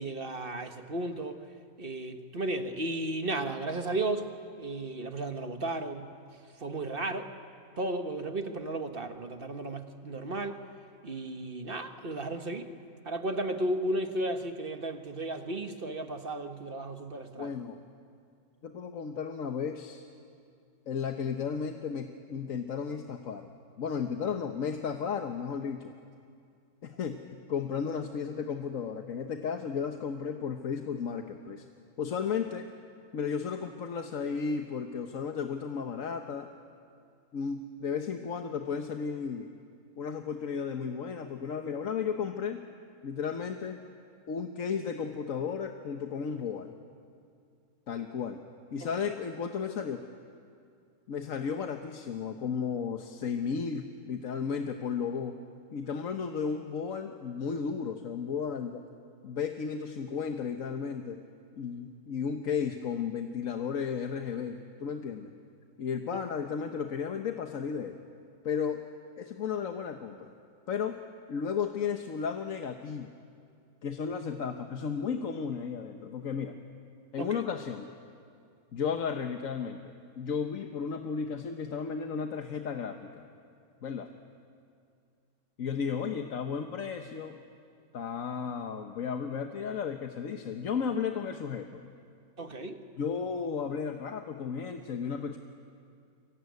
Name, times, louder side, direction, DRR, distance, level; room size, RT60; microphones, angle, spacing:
voice 1, 0.0-1.4 1.8-4.3 4.6-6.1 6.6-7.3 7.8-10.6 11.0-12.7 13.0-17.5 77.2-77.4 92.4-92.8, right 2 dB, 40° right, 7 dB, 1.5 m, -34 dB
voice 2, 17.4-17.8 18.6-20.1 20.9-23.5 23.8-25.9 26.8-31.6 32.0-32.7 33.1-36.5 37.3-39.5 40.0-42.6 43.0-43.8 44.3-46.8 47.9-48.4 48.7-50.0 51.1-55.4 55.7-58.8 59.2-61.2 61.6-65.3 65.8-68.0 68.4-68.8 69.2-70.3 70.7-71.0 71.3-73.1 73.8-76.6 77.1-77.9 78.7-83.2 83.8-84.1 85.6-87.4 87.9-91.9 93.0-95.4, left 6 dB, 65° left, 5 dB, 1.4 m, -34 dB
26.5 x 23.5 x 9.5 m, 2.3 s
omnidirectional pair, 1.5 m